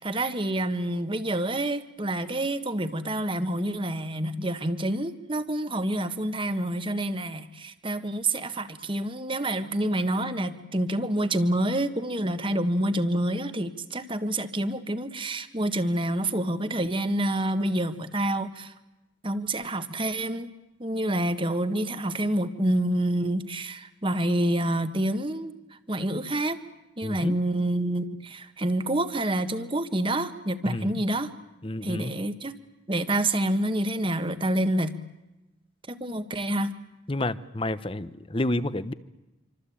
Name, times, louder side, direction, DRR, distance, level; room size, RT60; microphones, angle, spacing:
voice 1, 0.0-18.7 19.2-20.5 20.8-25.5 25.9-26.6 27.0-31.3 31.8-32.6 32.9-35.0 35.9-36.7, right 1 dB, 25° right, 11 dB, 1.5 m, -27 dB
voice 2, 27.0-27.4 30.6-30.9 31.6-32.1 37.1-38.9, left 1 dB, 25° left, 15 dB, 0.9 m, -29 dB
27.0 x 25.5 x 8.7 m, 1.0 s
head